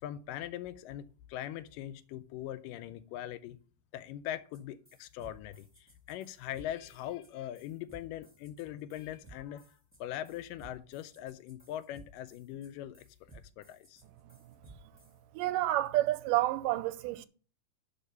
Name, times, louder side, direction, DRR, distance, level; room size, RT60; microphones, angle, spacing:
voice 1, 0.0-3.6 3.9-9.7 10.0-13.0 13.3-14.0, left 12 dB, 90° left, 2.2 m, -41 dB
sound 1, 4.5-4.6 4.8-15.2, right 3 dB, 5° right, 1.5 m, -57 dB
voice 2, 15.3-17.3, right 15 dB, 80° right, 2.2 m, -29 dB
10.5 x 4.4 x 5.4 m
omnidirectional pair, 3.8 m